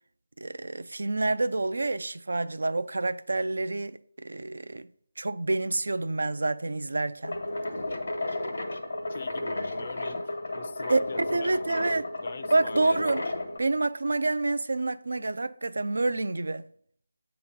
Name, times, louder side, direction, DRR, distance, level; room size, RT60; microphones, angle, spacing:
voice 1, 0.4-4.9 5.2-7.4 10.9-12.1 12.5-13.2 13.6-16.7, right 2 dB, 75° right, 0.3 m, -28 dB
sound 1, 7.2-13.6, left 2 dB, 75° left, 1.2 m, -33 dB
voice 2, 9.1-13.0, left 4 dB, 45° left, 0.6 m, -43 dB
8.2 x 2.9 x 5.2 m
figure-of-eight pair, 165°, 0 cm